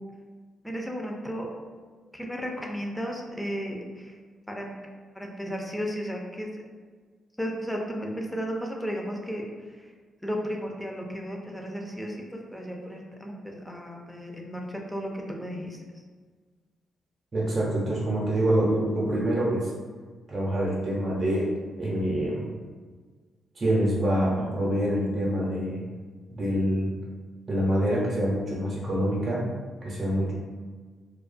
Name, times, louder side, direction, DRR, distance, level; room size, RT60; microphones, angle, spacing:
voice 1, 0.6-1.5 2.1-4.1 4.5-4.8 5.1-6.5 7.4-9.9 10.2-16.0, equal, 10° left, 0 dB, 0.5 m, -34 dB
voice 2, 17.3-19.7 20.3-22.4 23.5-25.8 26.3-26.9 27.5-29.4 29.8-30.3, right 1 dB, 40° right, -5 dB, 0.6 m, -26 dB
2.3 x 2.2 x 2.5 m, 1.5 s
hypercardioid pair, 45°, 0 cm